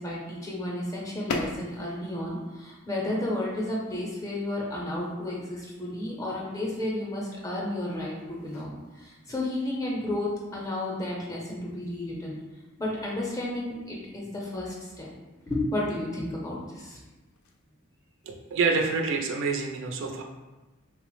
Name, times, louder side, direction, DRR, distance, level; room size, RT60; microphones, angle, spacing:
voice 1, 0.0-12.4 12.8-15.1 15.5-17.0, left 1 dB, 15° left, -4 dB, 0.5 m, -32 dB
sound 1, 1.2-17.7, left 3 dB, 85° left, 0.4 m, -45 dB
voice 2, 18.2-20.2, right 4 dB, 60° right, 2 dB, 0.3 m, -27 dB
3.3 x 2.0 x 3.0 m, 1.1 s
head